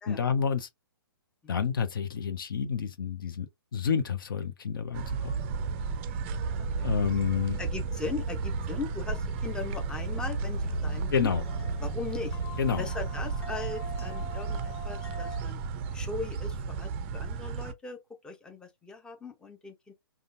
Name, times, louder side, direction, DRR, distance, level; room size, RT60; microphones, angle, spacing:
voice 1, 0.1-0.7 1.5-5.3 6.8-7.6 11.1-11.4 12.6-12.9, left 7 dB, 60° left, 0.7 m, -29 dB
sound 1, 4.9-17.7, right 5 dB, 30° right, 0.5 m, -34 dB
voice 2, 6.6-6.9 7.6-11.3 11.8-12.4 12.8-15.6 15.9-19.9, left 4 dB, 5° left, 0.7 m, -39 dB
sound 2, 7.3-13.3, equal, 15° right, 1.1 m, -39 dB
sound 3, 7.8-15.4, left 1 dB, 75° left, 1.1 m, -47 dB
5.1 x 2.3 x 2.5 m
figure-of-eight pair, 125°, 13 cm